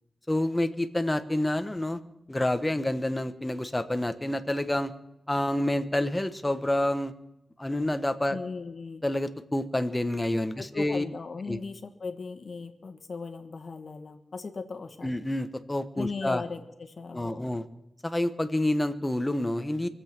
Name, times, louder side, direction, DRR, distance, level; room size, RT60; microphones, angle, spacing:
voice 1, 0.3-2.0 2.3-4.9 5.3-7.1 7.6-8.4 9.0-11.0 11.5-11.6 15.0-16.4 17.1-17.6 18.0-19.9, left 1 dB, 15° left, 9 dB, 1.1 m, -28 dB
voice 2, 8.3-9.0 10.6-15.2 15.9-17.5, left 4 dB, 60° left, 6 dB, 1.5 m, -38 dB
24.0 x 8.1 x 6.0 m, 0.85 s
wide cardioid pair, 95°, 0 cm